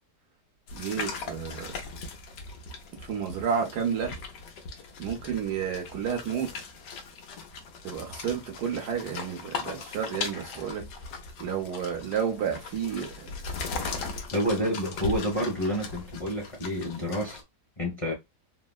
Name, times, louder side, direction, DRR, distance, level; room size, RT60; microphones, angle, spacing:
sound 1, 0.7-17.4, left 4 dB, 85° left, 1.4 m, -39 dB
voice 1, 0.7-1.8 3.0-4.1 5.0-6.7 7.8-10.9 11.4-13.4, right 7 dB, 70° right, 1.4 m, -31 dB
voice 2, 14.3-17.4 17.8-18.1, equal, 25° left, 0.9 m, -29 dB
3.8 x 2.0 x 2.3 m
omnidirectional pair, 1.8 m